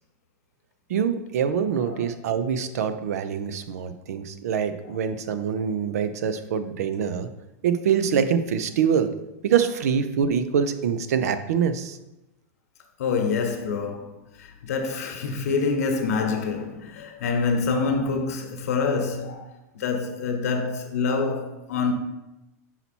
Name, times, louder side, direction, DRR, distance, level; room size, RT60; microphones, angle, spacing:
voice 1, 0.9-7.3 7.6-9.1 9.4-12.0, right 7 dB, 70° right, 0.5 m, -24 dB
voice 2, 13.0-19.5 19.7-21.9, left 4 dB, 65° left, 1.0 m, -26 dB
5.7 x 4.1 x 4.3 m
supercardioid pair, 175°, 9 cm